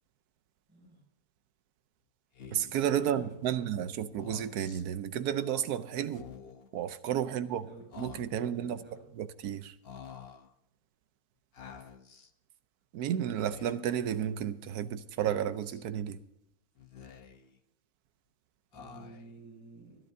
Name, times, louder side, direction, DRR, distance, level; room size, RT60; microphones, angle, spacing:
voice 1, 0.7-1.0 2.9-3.7 7.3-7.8 8.4-9.1 18.7-20.0, right 2 dB, 5° right, 6.6 m, -52 dB
Speech, 2.3-2.9 4.0-4.8 6.0-6.7 7.9-8.6 9.8-10.5 11.5-12.3 13.3-14.0 15.2-15.8 16.8-17.6 18.7-19.4, left 7 dB, 45° left, 1.0 m, -49 dB
voice 2, 2.5-6.3 6.7-7.7 8.0-8.8 9.2-9.7 12.9-16.2, right 10 dB, 85° right, 1.2 m, -32 dB
24.5 x 11.0 x 2.7 m
omnidirectional pair, 1.6 m